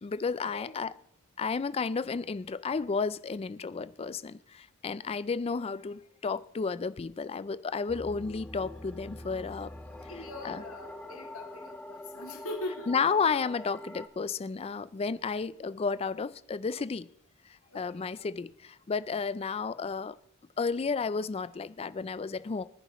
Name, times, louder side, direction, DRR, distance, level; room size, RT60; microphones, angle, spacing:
voice 1, 0.0-0.9 1.4-9.7 10.4-10.6 12.9-17.1 17.7-20.2 20.6-22.6, left 5 dB, 30° left, 0.4 m, -32 dB
sound 1, 7.9-14.1, left 1 dB, 5° left, 0.8 m, -44 dB
voice 2, 10.0-13.2 17.7-18.1, left 1 dB, 70° left, 2.5 m, -42 dB
24.0 x 10.0 x 3.0 m
head